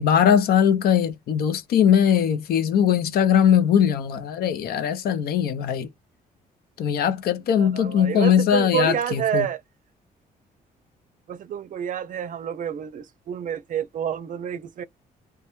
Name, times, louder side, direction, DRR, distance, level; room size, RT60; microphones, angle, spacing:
voice 1, 0.0-5.9 6.8-9.5, left 8 dB, 70° left, 0.5 m, -20 dB
voice 2, 7.6-9.6 11.3-14.8, right 9 dB, 55° right, 0.4 m, -28 dB
2.2 x 2.1 x 2.9 m
cardioid pair, 95°, 17 cm